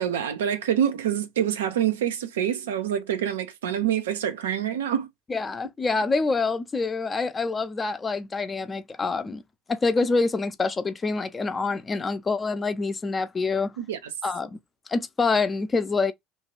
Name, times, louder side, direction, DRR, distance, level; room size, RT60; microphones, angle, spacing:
voice 1, 0.0-5.1 13.8-14.0, right 9 dB, 80° right, 0.5 m, -26 dB
voice 2, 5.3-9.4 9.7-13.7 14.2-14.6 14.9-16.1, left 4 dB, 25° left, 0.6 m, -26 dB
2.7 x 2.3 x 3.0 m
hypercardioid pair, 65°, 0 cm